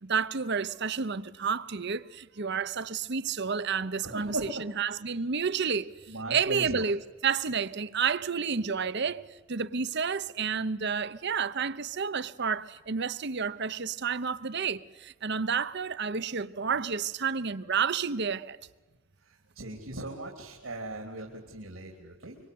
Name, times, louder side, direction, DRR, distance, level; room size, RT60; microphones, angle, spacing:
voice 1, 0.0-4.3 4.6-5.9 6.3-18.6, right 6 dB, 55° right, 0.9 m, -30 dB
voice 2, 4.0-4.7 6.1-6.8 19.2-22.4, right 1 dB, 80° right, 3.2 m, -38 dB
25.5 x 24.0 x 9.4 m
head